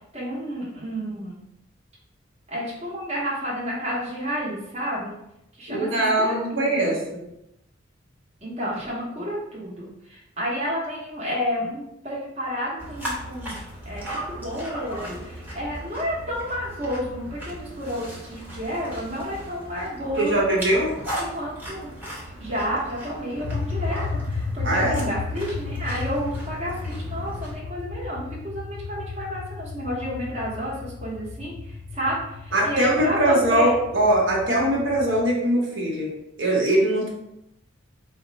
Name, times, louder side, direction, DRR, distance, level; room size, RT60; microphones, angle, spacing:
voice 1, 0.1-1.4 2.5-5.1 5.6-7.0 8.4-13.6 13.8-20.4 21.3-21.9 22.4-33.7, equal, 35° right, -6 dB, 1.0 m, -31 dB
voice 2, 5.7-7.2 20.2-20.9 24.6-25.1 32.5-37.1, right 1 dB, 70° right, -3 dB, 1.1 m, -22 dB
sound 1, 12.8-27.5, right 1 dB, 10° right, 0.9 m, -37 dB
sound 2, 23.4-35.3, left 4 dB, 50° left, 0.3 m, -33 dB
4.3 x 2.1 x 3.9 m, 0.83 s
head